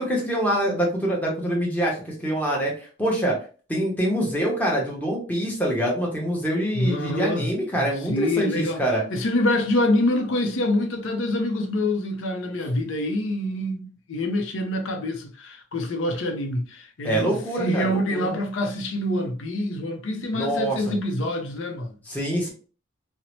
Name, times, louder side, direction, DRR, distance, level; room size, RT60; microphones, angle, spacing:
voice 1, 0.0-2.7 3.0-3.4 3.7-9.0 17.0-18.3 20.3-20.9 22.1-22.5, right 1 dB, 10° left, 0.8 m, -25 dB
voice 2, 6.7-7.5 7.8-21.9, left 1 dB, 85° left, 0.5 m, -26 dB
2.7 x 2.0 x 2.9 m
head